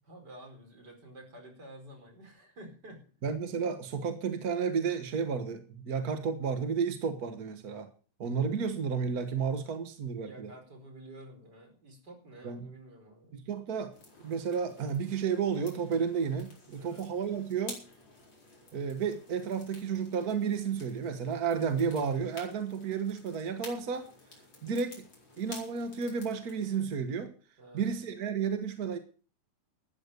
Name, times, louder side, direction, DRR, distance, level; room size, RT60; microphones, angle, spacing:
voice 1, 0.1-3.0 10.2-13.3 16.8-17.1 27.6-28.0, right 1 dB, 30° right, 3 dB, 5.1 m, -50 dB
voice 2, 3.2-7.9 8.2-10.5 12.4-12.7 13.3-13.9 14.2-17.8 18.7-24.1 24.6-25.0 25.4-27.3 27.7-29.0, right 6 dB, 55° right, 8 dB, 1.0 m, -32 dB
sound 1, 13.9-26.8, left 2 dB, 35° left, 5.1 m, -52 dB
13.5 x 9.3 x 6.8 m, 0.39 s
omnidirectional pair, 3.6 m